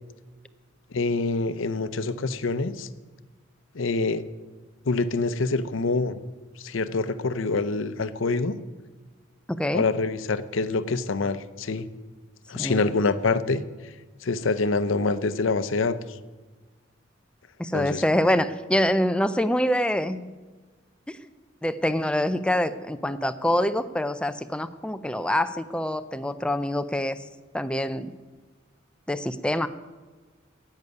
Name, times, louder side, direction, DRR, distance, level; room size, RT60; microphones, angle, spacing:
voice 1, 0.9-2.9 3.7-4.2 4.8-6.2 6.6-8.5 9.7-11.9 12.5-13.6 14.2-16.0 17.7-18.0, left 3 dB, 80° left, 14 dB, 0.7 m, -26 dB
voice 2, 9.5-9.8 12.5-12.9 17.6-20.3 21.1-21.2 21.6-27.2 27.5-28.1 29.1-29.7, left 1 dB, 5° left, 11 dB, 0.4 m, -25 dB
10.5 x 8.2 x 9.5 m, 1.4 s
head